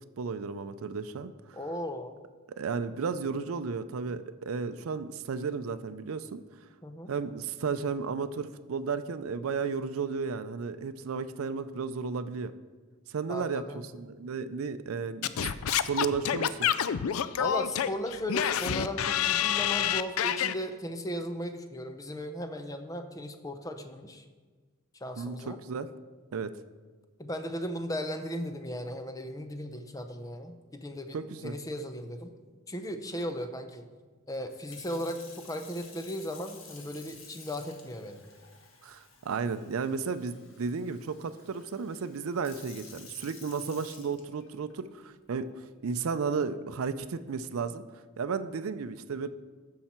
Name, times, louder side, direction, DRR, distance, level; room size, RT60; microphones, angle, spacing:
voice 1, 0.2-1.3 2.6-6.4 7.1-12.5 13.1-15.3 15.7-16.7 25.2-25.9 26.3-26.5 31.1-31.6 38.8-45.5 45.8-47.8 48.2-49.3, right 5 dB, 85° right, 12 dB, 0.4 m, -33 dB
voice 2, 1.5-2.2 6.8-7.1 13.3-13.9 17.4-24.2 25.0-25.6 27.2-32.3 32.7-33.9 34.3-38.2, equal, 15° left, 7 dB, 0.6 m, -36 dB
Singing / Scratching (performance technique), 15.2-20.5, left 9 dB, 85° left, 0.4 m, -28 dB
Sink (filling or washing) / Fill (with liquid), 34.5-44.7 45.4-45.7, left 4 dB, 65° left, 1.6 m, -52 dB
14.5 x 5.6 x 4.4 m, 1.4 s
head